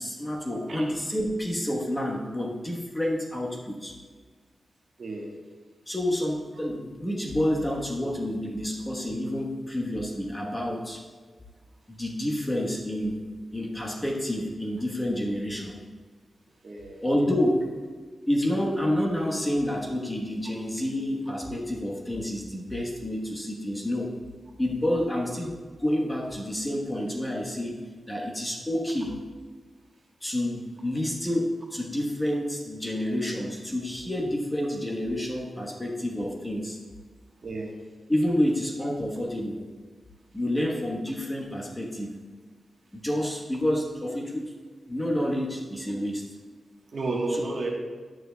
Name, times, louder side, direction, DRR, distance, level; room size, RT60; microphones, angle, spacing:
voice 1, 0.0-3.9 5.9-11.0 11.9-13.2 13.5-15.8 17.0-17.7 18.3-24.2 24.6-27.8 28.1-29.2 30.2-36.8 38.1-39.6 40.3-42.2 42.9-44.5 44.9-46.2 47.3-47.4, left 1 dB, 10° left, -2 dB, 1.1 m, -29 dB
voice 2, 5.0-5.3 16.6-17.0 37.4-37.7 46.9-47.7, right 2 dB, 50° right, 0 dB, 1.2 m, -31 dB
11.0 x 9.4 x 2.3 m, 1.5 s
wide cardioid pair, 145°, 0 cm